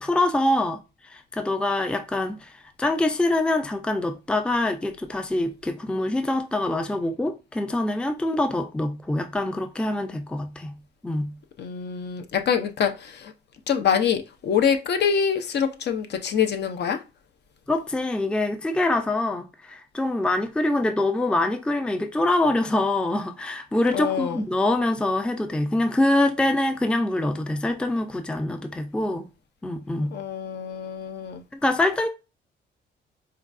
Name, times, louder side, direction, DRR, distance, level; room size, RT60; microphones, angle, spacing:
voice 1, 0.0-10.7 11.0-11.3 17.7-29.3 29.6-30.2 31.5-32.1, left 2 dB, 5° left, 0.4 m, -25 dB
voice 2, 11.6-13.3 13.7-17.0 23.9-24.4 30.1-31.4, left 7 dB, 60° left, 0.6 m, -25 dB
4.4 x 2.3 x 2.5 m
cardioid pair, 90°, 20 cm